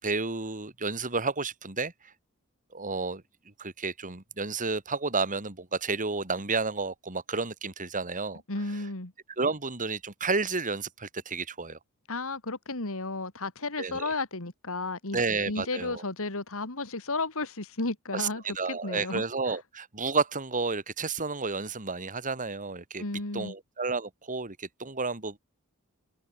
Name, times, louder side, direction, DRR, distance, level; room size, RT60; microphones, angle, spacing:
voice 1, 0.0-2.1 2.7-3.2 3.6-8.4 9.4-11.8 13.8-14.1 15.1-16.0 18.1-23.0 23.3-25.4, right 4 dB, 35° right, 3.4 m, -31 dB
voice 2, 8.5-9.1 12.1-15.2 15.5-18.4 18.7-19.6 23.0-23.5, left 3 dB, 65° left, 3.0 m, -33 dB
head